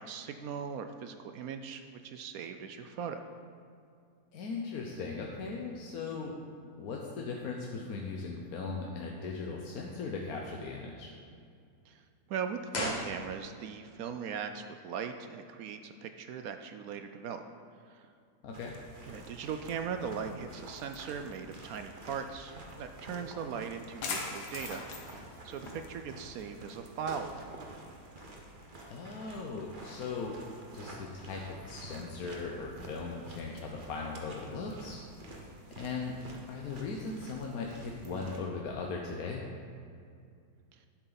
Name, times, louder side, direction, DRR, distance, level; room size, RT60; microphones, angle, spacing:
voice 1, 0.0-3.2 11.9-12.0 12.3-17.4 17.9-18.1 19.1-24.8 25.1-27.8 40.7-40.9, right 7 dB, 70° right, 7 dB, 0.9 m, -39 dB
voice 2, 4.3-6.3 6.8-11.1 18.4-18.7 28.9-30.4 30.7-35.0 35.8-36.2 36.5-39.4, left 4 dB, 70° left, -1 dB, 1.2 m, -38 dB
sound 1, 12.7-13.8 14.0-14.1, left 1 dB, 30° left, 1.1 m, -36 dB
sound 2, 18.5-38.4, right 1 dB, 35° right, 1.1 m, -49 dB
sound 3, 20.6-30.3, left 4 dB, 90° left, 1.7 m, -46 dB
10.5 x 7.8 x 4.0 m, 2.4 s
omnidirectional pair, 1.7 m